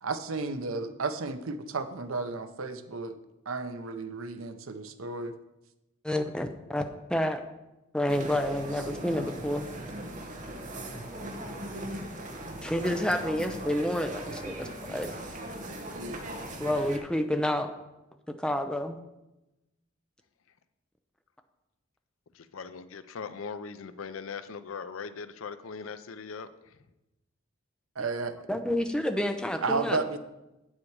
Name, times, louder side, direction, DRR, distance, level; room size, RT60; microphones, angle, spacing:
voice 1, 0.0-3.1 3.5-5.3 12.2-12.3 15.9-16.3 28.0-28.4 29.6-30.2, right 3 dB, 80° right, 10 dB, 0.7 m, -33 dB
voice 2, 6.0-7.4 7.9-9.7 12.6-15.1 16.6-17.7 18.3-19.0 28.0-28.1 28.5-30.0, left 1 dB, 5° left, 6 dB, 0.6 m, -29 dB
sound 1, 8.1-17.0, right 1 dB, 40° right, 1.0 m, -39 dB
voice 3, 22.3-26.8, left 5 dB, 80° left, 12 dB, 0.5 m, -40 dB
8.4 x 7.5 x 4.7 m, 0.97 s
head